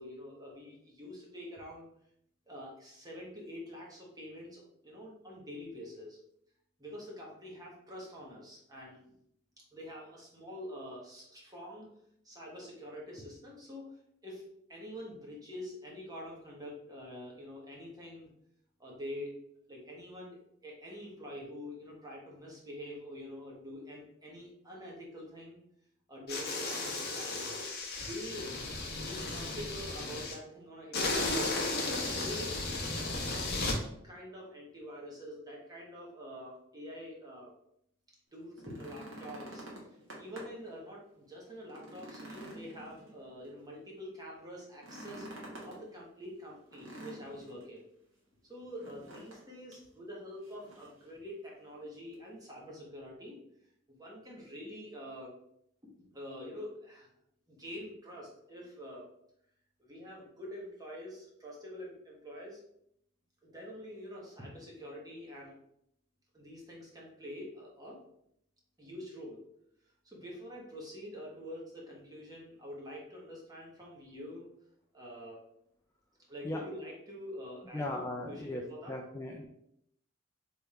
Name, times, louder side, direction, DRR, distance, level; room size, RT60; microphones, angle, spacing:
voice 1, 0.0-1.9 2.5-6.2 6.8-9.0 9.7-11.9 12.2-14.4 14.7-18.3 18.8-19.4 19.7-25.6 26.1-27.4 28.0-28.6 29.0-32.6 33.2-37.5 38.3-45.3 45.6-47.8 48.5-53.4 53.9-55.4 55.8-57.1 57.5-59.1 59.8-62.6 63.4-65.6 66.3-68.0 68.8-69.4 70.0-74.5 74.9-75.4 76.3-79.0, equal, 20° right, -4 dB, 1.2 m, -46 dB
sound 1, 26.3-30.3 30.9-33.8, left 2 dB, 50° left, 0.9 m, -34 dB
sound 2, 38.4-40.7 41.1-41.2 41.6-43.5 44.7-45.8 46.7-47.6 48.8-49.4 49.7-49.9 50.4-51.0 52.1-52.2, right 1 dB, 80° right, 1.4 m, -48 dB
voice 2, 77.7-78.6 78.9-79.5, left 1 dB, 15° left, 0 dB, 0.3 m, -37 dB
3.4 x 3.4 x 4.3 m, 0.75 s
head